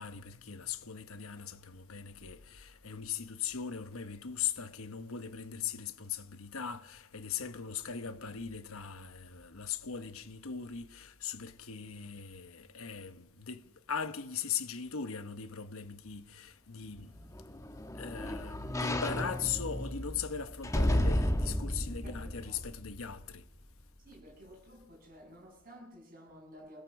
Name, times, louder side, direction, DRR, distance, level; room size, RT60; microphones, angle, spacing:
voice 1, 0.0-17.1 17.9-23.4, left 7 dB, 70° left, 1.1 m, -39 dB
sound 1, 17.0-23.3 23.8-23.9, left 1 dB, 15° left, 1.2 m, -33 dB
voice 2, 22.0-22.6 24.0-26.8, equal, 40° right, 7.5 m, -53 dB
24.5 x 17.0 x 6.3 m
head